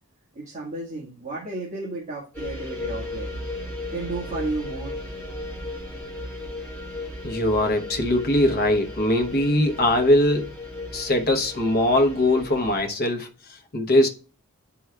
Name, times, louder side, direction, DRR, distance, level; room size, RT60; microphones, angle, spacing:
voice 1, 0.3-3.3 3.9-5.0, right 2 dB, 30° right, 1.5 m, -33 dB
sound 1, 2.3-12.8, left 2 dB, 5° left, 2.9 m, -35 dB
voice 2, 7.2-10.5 10.9-13.3 13.7-14.1, left 1 dB, 45° left, 0.8 m, -21 dB
9.9 x 4.6 x 2.3 m
head